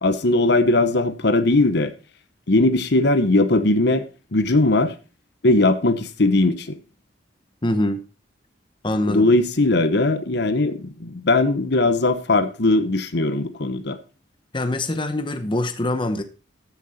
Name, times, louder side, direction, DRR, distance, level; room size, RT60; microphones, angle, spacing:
voice 1, 0.0-1.9 2.5-4.0 4.3-4.9 5.4-6.8 9.1-14.0, left 2 dB, 65° left, 1.1 m, -19 dB
voice 2, 7.6-8.0 8.8-9.3 14.5-16.2, left 1 dB, 25° left, 0.9 m, -24 dB
14.5 x 6.8 x 4.2 m
head